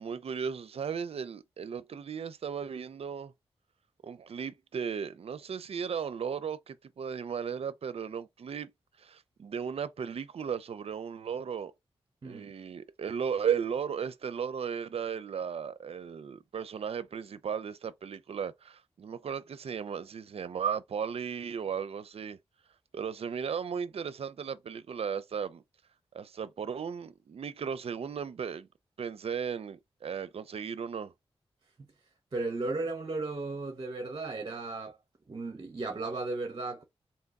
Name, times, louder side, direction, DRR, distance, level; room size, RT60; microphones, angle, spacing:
voice 1, 0.0-3.3 4.0-8.7 9.0-11.7 12.2-22.4 22.9-25.6 26.1-28.7 29.0-31.1, right 7 dB, 70° right, 0.5 m, -35 dB
voice 2, 12.2-12.5 31.8-31.9 32.3-35.0 35.3-36.8, right 3 dB, 45° right, 0.8 m, -35 dB
3.5 x 2.8 x 4.0 m
cardioid pair, 65°, 10 cm